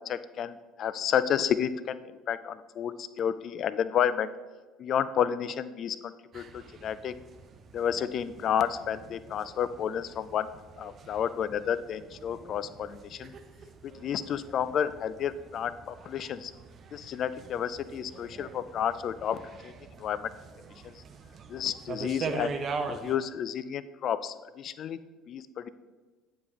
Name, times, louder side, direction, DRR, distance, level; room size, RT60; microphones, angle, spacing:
voice 1, 0.1-4.3 4.8-7.1 7.7-10.5 10.8-13.3 13.8-16.5 16.9-20.3 20.8-20.9 21.5-22.6 22.9-25.0 25.3-25.7, left 9 dB, 45° left, 15 dB, 0.3 m, -31 dB
sound 1, 6.3-23.2, right 4 dB, 40° right, 0.6 m, -43 dB
9.3 x 5.2 x 2.9 m, 1.3 s
figure-of-eight pair, 60°, 0 cm